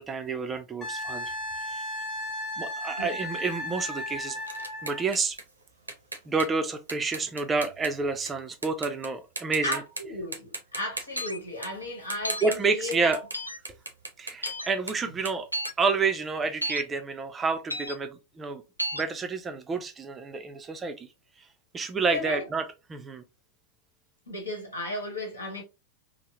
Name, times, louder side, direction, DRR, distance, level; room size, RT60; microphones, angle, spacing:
voice 1, 0.0-1.9 2.6-4.4 4.8-5.4 6.3-9.8 12.4-13.2 14.2-15.5 15.8-18.6 18.9-21.1 21.7-23.2, right 4 dB, 15° right, 0.4 m, -29 dB
Wind instrument woodwind instrument, 0.8-5.0 7.7-7.9, left 1 dB, 15° left, 1.1 m, -35 dB
sound 1, 3.4-8.3 8.6-9.1 9.4-10.0 10.3-13.4 13.6-16.7, right 3 dB, 80° right, 0.6 m, -39 dB
voice 2, 9.6-13.2 22.1-22.4 24.3-25.6, left 1 dB, 75° left, 1.4 m, -34 dB
sound 2, 11.2-11.4 12.2-12.5 13.3-13.6 14.4-14.7 15.5-15.7 16.6-16.8 17.7-17.9 18.8-19.0, equal, 90° left, 0.3 m, -32 dB
3.2 x 2.0 x 2.8 m
figure-of-eight pair, 90°, 0 cm